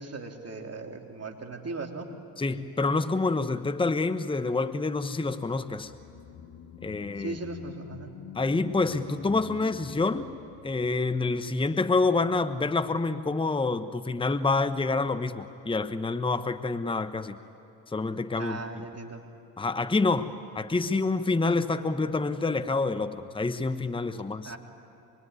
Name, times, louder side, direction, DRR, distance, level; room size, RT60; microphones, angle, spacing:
voice 1, 0.0-2.1 7.2-8.1 18.4-19.2 24.4-24.6, right 3 dB, 30° right, 3 dB, 3.5 m, -38 dB
voice 2, 2.4-5.9 6.8-7.4 8.3-10.3 10.6-17.4 17.9-18.6 19.6-24.5, left 3 dB, 10° left, 11 dB, 1.1 m, -27 dB
sound 1, 5.6-12.0 12.3-12.4, left 9 dB, 65° left, 2.0 m, -47 dB
25.0 x 23.0 x 9.8 m, 2.8 s
supercardioid pair, 65°, 47 cm